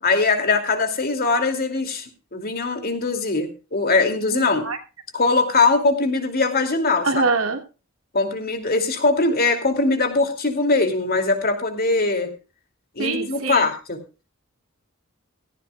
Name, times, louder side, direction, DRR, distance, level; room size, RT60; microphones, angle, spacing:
voice 1, 0.0-4.7 5.1-7.1 8.1-12.3 13.0-14.0, left 3 dB, 45° left, 6 dB, 2.7 m, -21 dB
voice 2, 4.3-4.8 7.0-7.6 13.0-13.7, right 3 dB, 80° right, 5 dB, 2.6 m, -24 dB
16.5 x 15.5 x 2.4 m, 0.32 s
head